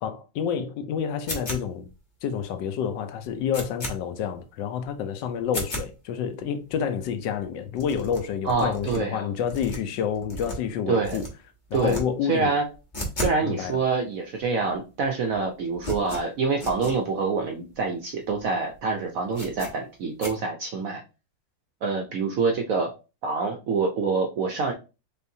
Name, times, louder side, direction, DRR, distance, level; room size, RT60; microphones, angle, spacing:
voice 1, 0.0-1.9 2.2-11.3 11.7-12.5 13.4-13.8, left 8 dB, 75° left, 1.3 m, -29 dB
sound 1, 1.3-1.9 2.4-2.5 2.8-2.9 3.2-4.0 4.4-4.5 4.8-5.0 5.4-5.9 6.4-6.5 6.7-6.8 7.0-7.1 7.4-7.5 7.7-9.0 9.4-10.8 11.0-11.3 11.7-12.0 12.3-13.4 13.7-13.8 14.4-14.5 14.7-15.1 15.3-17.0 17.4-17.5 17.7-17.8 18.3-18.4 18.7-18.8 19.3-19.7 20.2-20.3, equal, 30° left, 1.1 m, -34 dB
voice 2, 8.4-9.3 10.9-11.2 11.7-12.0 12.3-12.7 13.2-21.0 21.8-22.9 23.2-24.7, right 4 dB, 65° right, 0.8 m, -26 dB
4.5 x 3.4 x 2.6 m
omnidirectional pair, 2.0 m